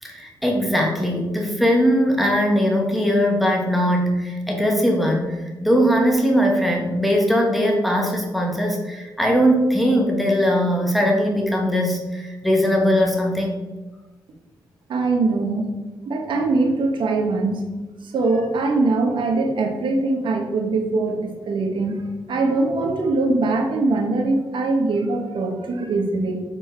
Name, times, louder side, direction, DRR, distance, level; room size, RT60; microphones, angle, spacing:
voice 1, 0.0-13.5, equal, ahead, -1 dB, 1.2 m, -20 dB
voice 2, 14.9-15.8 16.1-17.6 18.0-22.0 22.3-26.4, right 3 dB, 85° right, 3 dB, 1.3 m, -22 dB
7.5 x 4.5 x 4.5 m, 1.2 s
wide cardioid pair, 125°, 8 cm